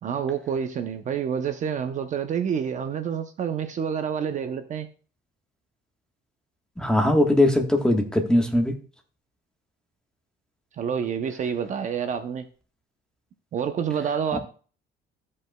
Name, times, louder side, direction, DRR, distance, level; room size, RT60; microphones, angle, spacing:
voice 1, 0.0-4.9 10.8-12.4 13.5-14.4, right 7 dB, 40° right, 0.6 m, -28 dB
voice 2, 6.8-8.7 14.3-14.4, left 1 dB, 5° left, 1.2 m, -20 dB
15.5 x 5.4 x 2.2 m
cardioid pair, 150°, 19 cm